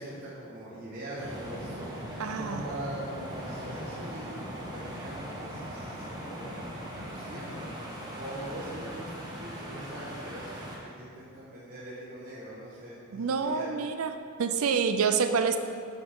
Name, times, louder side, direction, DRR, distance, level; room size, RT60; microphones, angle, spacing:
voice 1, 0.0-6.6 6.9-13.7, right 1 dB, 45° right, -8 dB, 1.3 m, -42 dB
sound 1, 1.2-10.8, equal, 20° right, 1.4 m, -40 dB
voice 2, 2.2-2.7 13.1-14.1 14.4-15.6, right 5 dB, 75° right, 8 dB, 0.5 m, -27 dB
10.5 x 6.3 x 3.7 m, 2.3 s
head